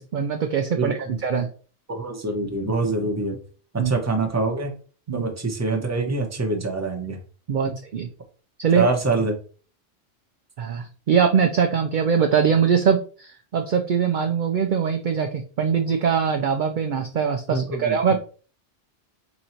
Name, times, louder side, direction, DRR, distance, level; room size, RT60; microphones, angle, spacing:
voice 1, 0.0-1.5 3.8-3.9 5.1-5.3 7.5-8.1 8.6-8.8 10.6-18.2, right 7 dB, 60° right, 5 dB, 0.5 m, -22 dB
voice 2, 0.8-1.5 1.9-3.4 3.7-4.7 5.1-7.2 8.7-9.4 17.5-18.0, right 3 dB, 15° right, 3 dB, 0.7 m, -25 dB
4.0 x 2.7 x 4.3 m, 0.39 s
omnidirectional pair, 1.3 m